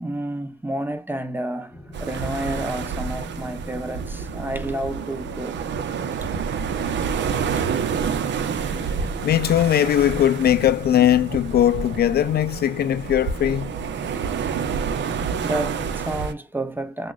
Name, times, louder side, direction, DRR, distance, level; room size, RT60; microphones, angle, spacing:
voice 1, 0.0-5.6 7.9-8.1 14.0-14.5 15.4-17.1, right 1 dB, 10° right, 0.8 m, -30 dB
sound 1, 1.7-16.0, equal, 10° left, 1.3 m, -41 dB
sound 2, 1.9-16.3, right 6 dB, 65° right, 0.7 m, -28 dB
voice 2, 9.2-13.7, left 11 dB, 55° left, 0.4 m, -19 dB
5.9 x 2.4 x 2.4 m
cardioid pair, 90°, 20 cm